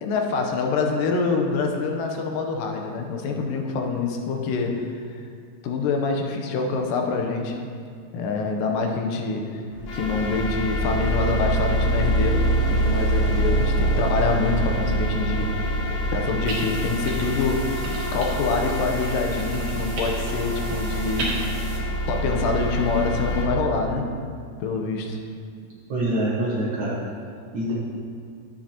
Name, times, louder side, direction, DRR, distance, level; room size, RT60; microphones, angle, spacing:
voice 1, 0.0-4.9 5.6-7.6 8.1-9.6 9.9-15.8 16.1-21.3 22.1-24.1 24.6-25.2, left 4 dB, 85° left, 3 dB, 2.4 m, -26 dB
sound 1, 9.7-23.4, right 1 dB, 60° left, 2.3 m, -25 dB
sound 2, 16.5-21.8, right 2 dB, 60° right, 2.2 m, -35 dB
voice 2, 25.9-27.0 27.5-27.7, right 1 dB, 85° right, -6 dB, 1.0 m, -25 dB
10.5 x 7.6 x 2.8 m, 2.2 s
omnidirectional pair, 3.9 m